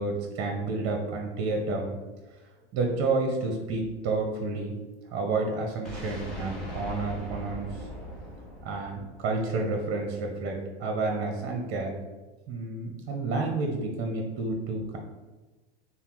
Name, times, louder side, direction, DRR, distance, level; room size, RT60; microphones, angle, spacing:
voice 1, 0.0-2.0 2.7-4.7 5.1-7.7 8.6-11.9 12.5-15.0, right 3 dB, 40° right, 2 dB, 0.7 m, -30 dB
sound 1, 5.8-9.8, left 1 dB, ahead, 1.1 m, -39 dB
5.6 x 2.0 x 4.5 m, 1.2 s
supercardioid pair, 130°, 32 cm